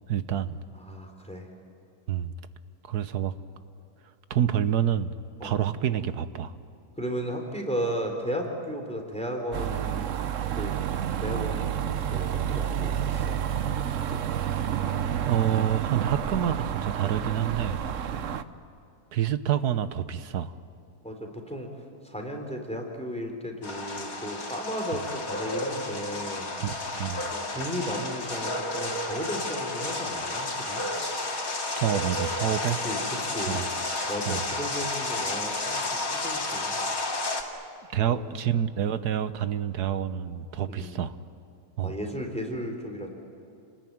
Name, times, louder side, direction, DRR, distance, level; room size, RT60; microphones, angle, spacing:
voice 1, 0.1-0.6 2.1-2.3 2.9-3.3 4.3-5.1 5.4-6.5 14.0-14.7 15.2-17.9 19.1-20.6 26.6-27.3 31.8-32.8 33.5-33.7 34.3-34.4 37.9-41.1 41.8-41.9, right 10 dB, 80° right, 12 dB, 1.5 m, -28 dB
voice 2, 0.7-1.5 5.4-5.7 7.0-10.1 10.5-10.7 11.2-11.8 12.1-13.3 14.1-14.2 18.1-18.4 21.0-21.7 22.0-26.5 27.3-30.9 32.8-33.7 34.1-35.8 36.1-36.8 38.0-38.3 40.7-41.0 41.8-43.1, equal, 5° left, 3 dB, 3.6 m, -35 dB
sound 1, 9.5-18.4, right 9 dB, 60° right, 1.1 m, -29 dB
sound 2, 23.6-37.4, left 2 dB, 60° left, 3.0 m, -31 dB
29.5 x 20.0 x 9.4 m, 2.6 s
omnidirectional pair, 1.7 m